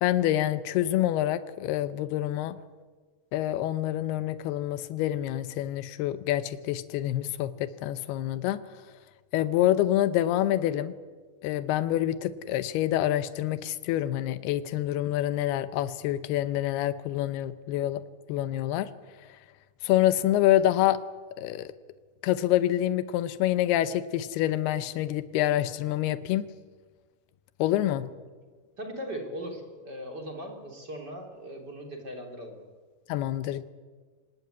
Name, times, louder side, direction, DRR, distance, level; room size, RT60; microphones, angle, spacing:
voice 1, 0.0-2.6 3.3-8.6 9.3-10.9 11.4-18.0 18.3-18.9 19.8-21.0 21.4-21.7 22.2-26.5 27.6-28.1 33.1-33.7, left 13 dB, 90° left, 13 dB, 2.9 m, -27 dB
voice 2, 28.8-32.6, equal, 30° right, 3 dB, 3.4 m, -39 dB
25.5 x 18.5 x 9.5 m, 1.5 s
omnidirectional pair, 4.4 m